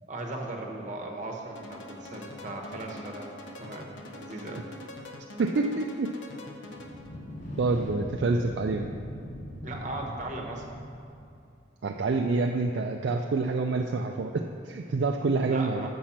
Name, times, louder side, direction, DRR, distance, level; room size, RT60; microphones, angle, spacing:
voice 1, 0.0-3.3 3.6-4.7 9.6-10.6 15.4-15.9, right 2 dB, 40° right, 1 dB, 0.9 m, -37 dB
sound 1, 1.6-7.2, left 1 dB, 65° left, 0.8 m, -44 dB
voice 2, 5.4-6.1 7.6-8.9 11.8-15.9, right 3 dB, 55° right, 2 dB, 0.4 m, -27 dB
sound 2, 6.6-11.5, equal, 40° left, 1.1 m, -40 dB
6.2 x 5.8 x 7.2 m, 2.5 s
head